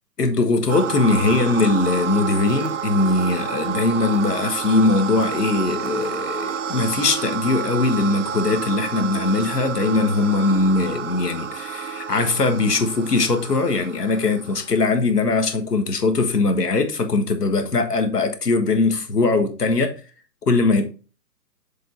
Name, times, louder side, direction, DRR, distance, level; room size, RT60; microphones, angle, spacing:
voice 1, 0.2-20.0 20.5-20.9, left 3 dB, 70° left, 1.7 m, -21 dB
sound 1, 0.7-14.8, right 7 dB, 50° right, 0.5 m, -29 dB
7.4 x 3.6 x 4.1 m
figure-of-eight pair, 140°, 49 cm